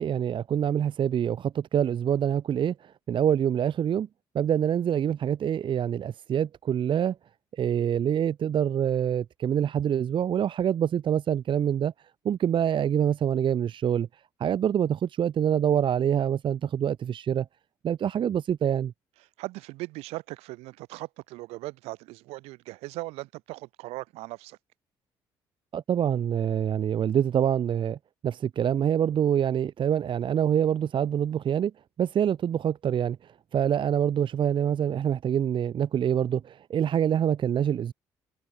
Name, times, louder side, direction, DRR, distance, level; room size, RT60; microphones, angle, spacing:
voice 1, 0.0-4.1 4.3-7.2 7.5-11.9 12.2-14.1 14.4-17.5 17.8-18.9 25.7-28.0 28.2-31.7 32.0-37.9, right 9 dB, 50° right, 0.8 m, -25 dB
voice 2, 19.4-24.6, right 21 dB, 80° right, 3.5 m, -39 dB
supercardioid pair, 60°, 10 cm